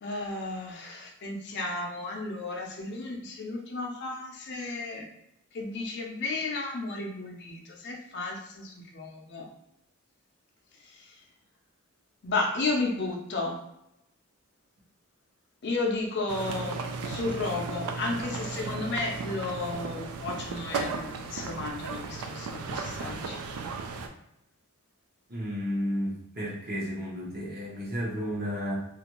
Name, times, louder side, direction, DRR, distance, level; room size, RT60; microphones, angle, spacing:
voice 1, 0.0-5.1 5.5-9.5 10.9-11.0 12.2-13.6 15.6-23.4, left 3 dB, 50° left, 1 dB, 0.5 m, -33 dB
sound 1, 16.3-24.1, right 4 dB, 85° right, 0.3 m, -35 dB
voice 2, 25.3-28.9, equal, 45° right, -5 dB, 0.9 m, -32 dB
2.5 x 2.2 x 2.9 m, 0.83 s
head